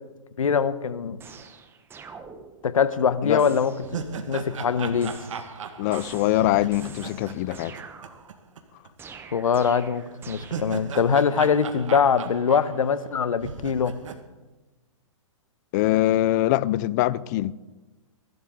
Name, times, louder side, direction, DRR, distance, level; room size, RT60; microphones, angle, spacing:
voice 1, 0.4-1.2 2.6-3.7 4.3-5.1 9.3-14.0, left 6 dB, 80° left, 1.0 m, -23 dB
sound 1, 1.2-2.9 3.4-4.1 5.0-8.6 9.0-11.0, right 5 dB, 15° right, 0.9 m, -46 dB
sound 2, 3.0-3.1 3.5-8.6 8.9-9.0 10.1-13.1 13.4-14.2, right 5 dB, 70° right, 1.7 m, -37 dB
voice 2, 5.8-7.7 15.7-17.5, left 15 dB, 35° left, 0.5 m, -23 dB
23.0 x 12.0 x 3.7 m
hypercardioid pair, 135°, 17 cm